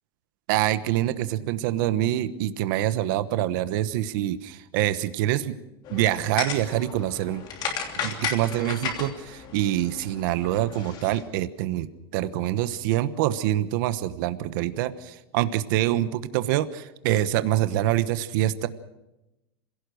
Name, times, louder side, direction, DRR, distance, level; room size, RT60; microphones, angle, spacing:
voice 1, 0.5-5.6 5.9-7.4 8.0-11.9 12.1-18.7, right 13 dB, 60° right, 13 dB, 1.2 m, -25 dB
sound 1, 5.8-11.2, left 6 dB, 35° left, 3.1 m, -34 dB
26.5 x 17.0 x 6.5 m, 0.95 s
supercardioid pair, 160°, 12 cm